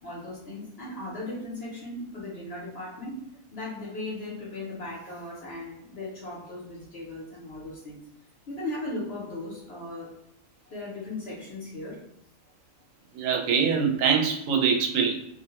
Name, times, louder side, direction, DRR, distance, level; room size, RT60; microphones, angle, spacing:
voice 1, 0.0-3.2 3.5-8.1 8.5-10.2 10.7-12.1, left 2 dB, 60° left, -5 dB, 0.9 m, -37 dB
voice 2, 13.1-15.2, right 6 dB, 80° right, 3 dB, 1.0 m, -24 dB
2.4 x 2.1 x 2.8 m, 0.80 s
omnidirectional pair, 1.4 m